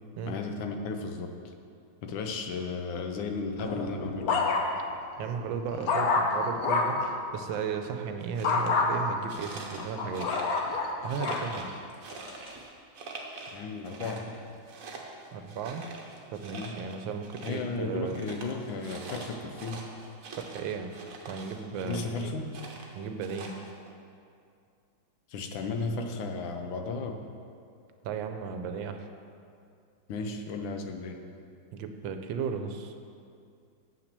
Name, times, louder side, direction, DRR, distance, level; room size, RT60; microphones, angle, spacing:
voice 1, 0.3-1.5 2.0-4.4 13.5-14.4 16.5-16.8 17.4-19.8 21.8-22.5 25.3-27.3 30.1-31.2, left 3 dB, 80° left, 5 dB, 1.5 m, -34 dB
sound 1, 3.6-4.9 5.4-7.1 8.4-8.9 9.5-11.5 12.1-12.5, left 4 dB, 60° left, 1.1 m, -28 dB
voice 2, 5.2-10.3 10.6-11.8 15.3-15.9 16.3-18.2 20.4-20.9 21.3-22.3 22.9-23.5 28.0-29.1 31.7-32.9, right 6 dB, 85° right, 7 dB, 1.4 m, -35 dB
sound 2, 8.2-8.7 9.3-10.8 11.1-12.7 12.9-13.6 13.8-17.8 18.1-22.2 22.5-23.9, right 3 dB, 50° right, 1.2 m, -44 dB
8.0 x 5.9 x 6.7 m, 2.4 s
omnidirectional pair, 2.1 m